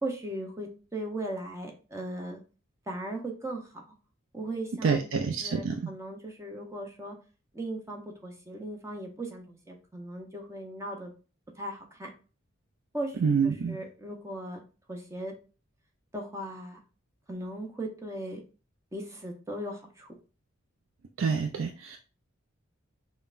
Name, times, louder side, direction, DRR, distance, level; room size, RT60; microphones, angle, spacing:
voice 1, 0.0-2.4 2.9-3.8 4.3-7.2 7.5-11.1 11.6-12.1 12.9-14.6 14.9-15.3 16.1-16.8 17.3-18.4 18.9-20.1, right 1 dB, 15° right, 2 dB, 0.6 m, -38 dB
voice 2, 4.8-5.9 13.2-13.8 21.2-22.0, right 5 dB, 70° right, 4 dB, 0.4 m, -27 dB
5.5 x 2.1 x 2.4 m, 0.35 s
head